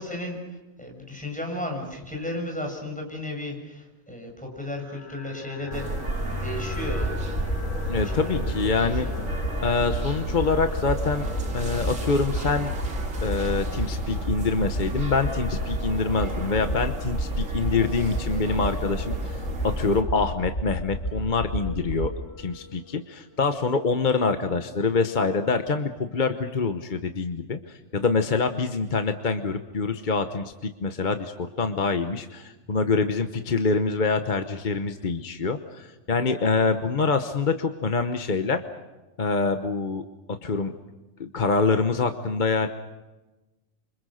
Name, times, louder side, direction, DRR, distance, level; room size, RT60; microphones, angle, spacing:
voice 1, 0.0-5.9 6.3-7.4 7.9-8.5 8.8-9.3, left 1 dB, 5° left, 2 dB, 6.8 m, -35 dB
sound 1, 4.8-24.5, left 3 dB, 60° left, 8.1 m, -43 dB
sound 2, 5.7-20.0, right 2 dB, 80° right, 2.5 m, -33 dB
sound 3, 6.7-22.1, equal, 80° left, 3.0 m, -32 dB
voice 2, 7.9-9.1 9.6-11.3 11.5-12.7 13.2-22.1 22.4-38.6 39.2-40.0 40.4-40.7 41.2-42.7, left 4 dB, 40° left, 7 dB, 1.1 m, -25 dB
28.5 x 25.5 x 6.4 m, 1.1 s
omnidirectional pair, 1.3 m